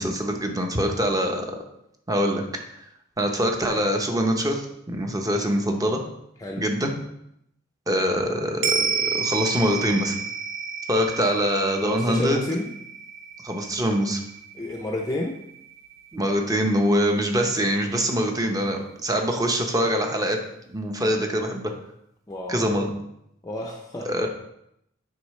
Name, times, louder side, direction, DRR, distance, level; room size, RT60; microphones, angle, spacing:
voice 1, 0.0-1.6 2.1-2.4 3.2-6.0 6.6-6.9 7.9-10.1 10.9-12.4 13.4-14.2 16.1-20.4 20.7-21.7 22.5-22.9 24.1-24.3, equal, 20° right, 3 dB, 0.9 m, -24 dB
sound 1, 8.6-17.2 17.5-17.6, right 5 dB, 70° right, 0.7 m, -31 dB
voice 2, 11.8-12.7 14.6-15.4 22.3-22.7 23.4-24.3, left 1 dB, 15° left, 1 dB, 0.6 m, -30 dB
8.4 x 5.6 x 3.2 m, 0.77 s
head